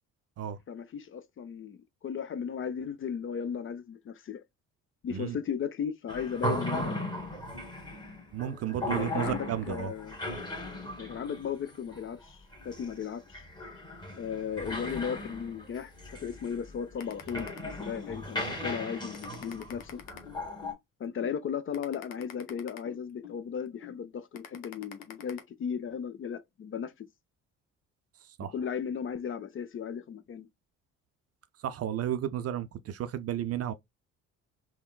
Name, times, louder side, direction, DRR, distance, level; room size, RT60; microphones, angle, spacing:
voice 1, 0.7-4.4 5.0-7.1 9.0-10.2 11.0-13.4 14.2-15.9 16.2-20.0 21.0-27.1 28.5-30.5, left 7 dB, 30° left, 0.5 m, -36 dB
sound 1, 6.1-20.7, left 1 dB, 10° left, 1.4 m, -37 dB
voice 2, 8.3-9.9 28.4-28.5 31.6-33.7, right 11 dB, 40° right, 0.5 m, -33 dB
sound 2, 17.0-18.2 18.6-18.8 19.1-20.8 21.2-21.4 21.7-23.4 23.8-24.0 24.3-25.4, left 10 dB, 75° left, 0.7 m, -45 dB
3.6 x 2.2 x 2.3 m
hypercardioid pair, 50°, 40 cm